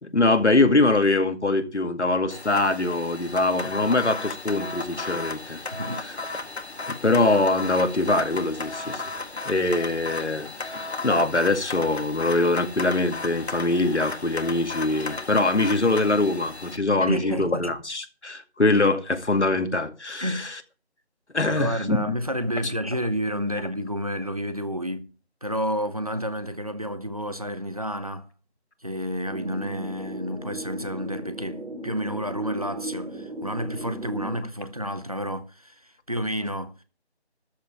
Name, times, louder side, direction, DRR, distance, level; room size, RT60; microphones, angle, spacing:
voice 1, 0.0-5.6 6.9-9.0 9.5-20.5 21.3-22.0, left 2 dB, 85° left, 2.3 m, -23 dB
sound 1, 2.3-16.8, left 3 dB, 70° left, 1.8 m, -35 dB
voice 2, 5.7-6.0 17.0-17.7 20.2-20.5 21.4-25.1 25.4-28.3 28.8-36.8, equal, 35° right, 0.8 m, -30 dB
sound 2, 29.3-34.4, right 2 dB, 75° right, 5.7 m, -36 dB
13.0 x 5.5 x 8.4 m
figure-of-eight pair, 175°, 33 cm